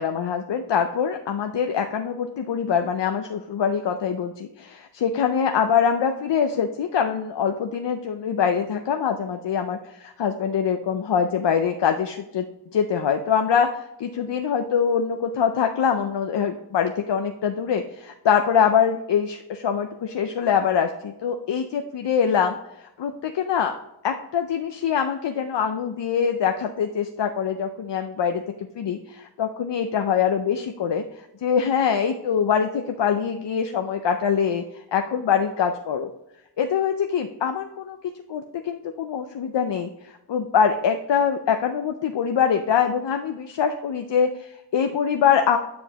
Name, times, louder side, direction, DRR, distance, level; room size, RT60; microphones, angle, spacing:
voice 1, 0.0-12.4 12.7-23.7 24.0-28.4 28.8-36.1 36.6-38.0 38.3-45.6, left 7 dB, 80° left, 5 dB, 0.6 m, -24 dB
8.9 x 5.2 x 2.9 m, 0.88 s
wide cardioid pair, 50°, 42 cm